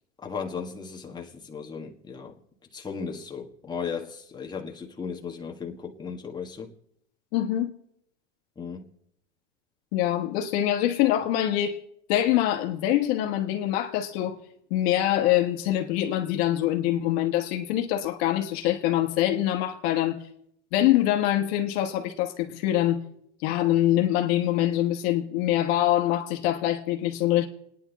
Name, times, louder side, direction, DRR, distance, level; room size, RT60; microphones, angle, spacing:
voice 1, 0.2-2.3 2.7-6.7 8.6-8.8, left 6 dB, 10° left, 1.6 m, -36 dB
voice 2, 7.3-7.7 9.9-11.8 12.1-14.4 14.7-20.2 20.7-23.0 23.4-27.5, left 13 dB, 60° left, 1.5 m, -24 dB
28.5 x 10.0 x 4.1 m
supercardioid pair, 125°, 36 cm